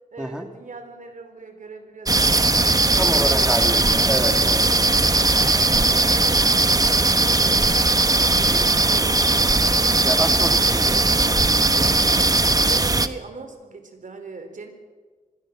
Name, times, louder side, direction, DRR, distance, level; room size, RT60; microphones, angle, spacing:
voice 1, 0.1-2.6 2.8-3.5 6.4-7.0 7.3-9.4 12.3-14.7, right 4 dB, 70° right, 7 dB, 3.9 m, -40 dB
sound 1, 2.1-13.1, right 2 dB, 25° right, 1.1 m, -18 dB
voice 2, 3.0-4.7 10.0-11.0, equal, 5° right, 4 dB, 2.4 m, -27 dB
26.0 x 20.5 x 6.3 m, 1.4 s
wide cardioid pair, 85°, 14 cm